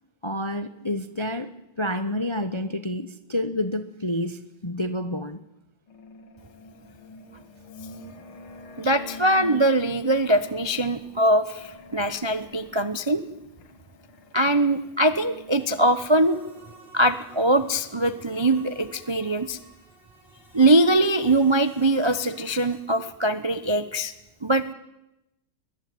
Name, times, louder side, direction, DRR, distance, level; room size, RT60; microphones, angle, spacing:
voice 1, 0.2-1.5 1.8-5.4, left 1 dB, 30° left, 11 dB, 0.5 m, -29 dB
sound 1, 5.9-15.8, left 1 dB, 85° left, 2.8 m, -46 dB
voice 2, 8.8-13.2 14.3-16.4 16.9-19.6 20.5-24.1 24.4-24.7, right 1 dB, 50° right, 12 dB, 0.3 m, -22 dB
sound 2, 15.6-22.8, right 2 dB, 25° right, 5.9 m, -52 dB
21.5 x 21.0 x 9.4 m, 0.91 s
omnidirectional pair, 2.2 m